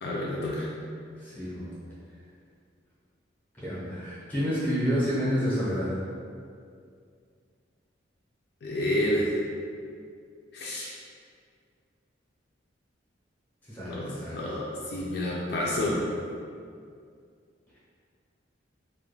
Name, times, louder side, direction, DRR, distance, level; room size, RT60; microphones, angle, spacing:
voice 1, 0.0-0.7 8.6-9.4 10.5-10.9 13.8-16.1, left 1 dB, 55° left, -5 dB, 0.3 m, -29 dB
voice 2, 1.2-1.7 3.6-5.9 13.7-14.4, equal, 10° left, -10 dB, 0.7 m, -29 dB
2.2 x 2.2 x 3.1 m, 2.2 s
head